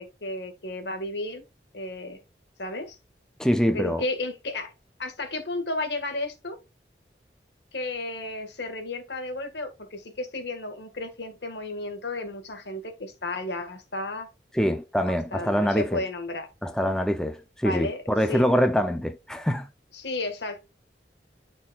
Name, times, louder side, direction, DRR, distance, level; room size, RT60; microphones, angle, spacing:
voice 1, 0.0-1.4 1.7-2.2 2.6-3.0 3.7-4.7 5.0-6.6 7.7-14.3 15.1-16.5 17.6-18.0 18.3-18.4 19.9-20.6, left 2 dB, 80° left, 1.7 m, -33 dB
voice 2, 3.4-4.0 14.5-16.0 16.6-19.7, equal, 5° left, 0.5 m, -24 dB
12.0 x 4.5 x 2.4 m
head